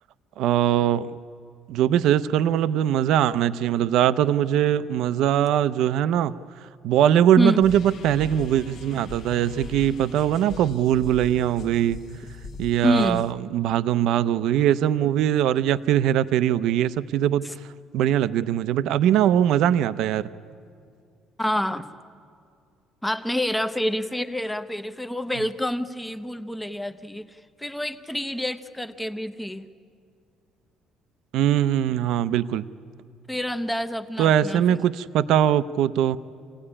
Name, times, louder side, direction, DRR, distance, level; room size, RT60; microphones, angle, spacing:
voice 1, 0.4-1.2 1.7-6.3 6.8-12.0 12.6-17.4 17.9-20.3 31.3-32.7 34.2-36.2, right 10 dB, 60° right, 15 dB, 0.6 m, -21 dB
sound 1, 7.6-13.3, left 4 dB, 45° left, 1.0 m, -40 dB
voice 2, 12.8-13.2 17.4-17.5 21.4-21.9 23.0-29.7 33.3-34.8, equal, 5° left, 11 dB, 0.7 m, -27 dB
27.0 x 16.5 x 9.9 m, 2.4 s
cardioid pair, 170°, 0 cm